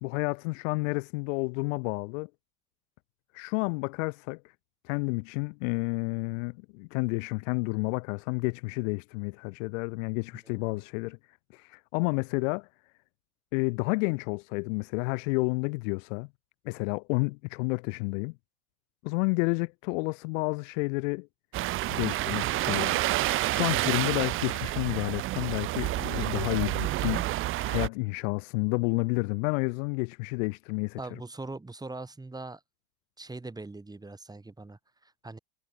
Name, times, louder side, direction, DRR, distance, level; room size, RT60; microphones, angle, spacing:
voice 1, 0.0-2.3 3.3-4.4 4.9-11.2 11.5-12.7 13.5-16.3 16.6-18.3 19.0-21.3 21.9-23.0 23.3-27.3 27.6-31.0, left 30 dB, 60° left, 1.0 m, -30 dB
voice 2, 10.5-10.8 31.0-32.6 33.2-35.4, right 2 dB, 10° right, 4.7 m, -42 dB
sound 1, 21.5-27.9, right 16 dB, 30° right, 0.6 m, -29 dB
supercardioid pair, 115°, 44 cm